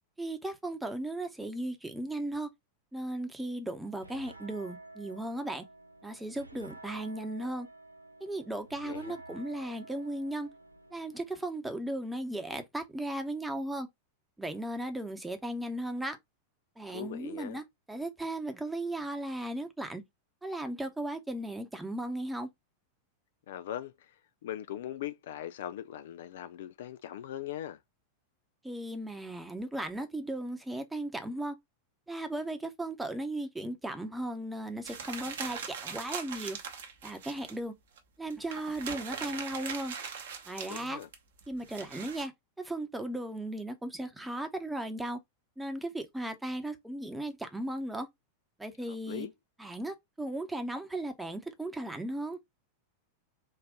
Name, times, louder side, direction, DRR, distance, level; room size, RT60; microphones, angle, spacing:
voice 1, 0.2-2.5 2.9-5.6 6.0-7.7 8.2-10.5 10.9-13.9 14.4-16.2 16.8-20.0 20.4-22.5 28.6-31.6 32.1-36.6 37.0-37.7 38.2-40.0 40.5-41.0 41.5-42.3 42.6-45.2 45.6-48.1 48.6-49.3 49.6-52.4, right 1 dB, 5° right, 0.8 m, -36 dB
sound 1, 3.8-11.5, right 2 dB, 85° right, 0.4 m, -51 dB
voice 2, 8.8-9.2 16.9-17.6 23.5-24.1 24.4-27.8 40.7-41.1 48.9-49.3, left 11 dB, 55° left, 0.3 m, -40 dB
sound 2, 34.8-37.6 38.0-38.1 38.3-42.2, right 6 dB, 60° right, 0.9 m, -40 dB
3.8 x 2.5 x 3.6 m
figure-of-eight pair, 90°, 0 cm